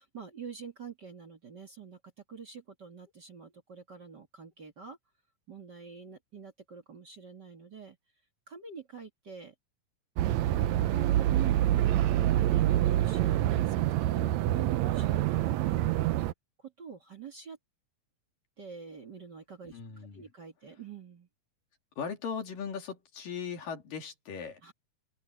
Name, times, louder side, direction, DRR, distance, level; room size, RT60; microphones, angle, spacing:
voice 1, 0.0-2.0 2.3-5.0 5.5-8.0 8.5-9.5 10.9-15.8 16.6-17.6 18.6-21.3 24.6-24.7, right 6 dB, 35° right, 2.3 m, -46 dB
sound 1, 10.2-16.3, right 13 dB, 80° right, 1.6 m, -26 dB
voice 2, 10.6-11.0 19.7-20.3 22.0-24.6, left 6 dB, 80° left, 4.7 m, -39 dB
open air
omnidirectional pair, 3.9 m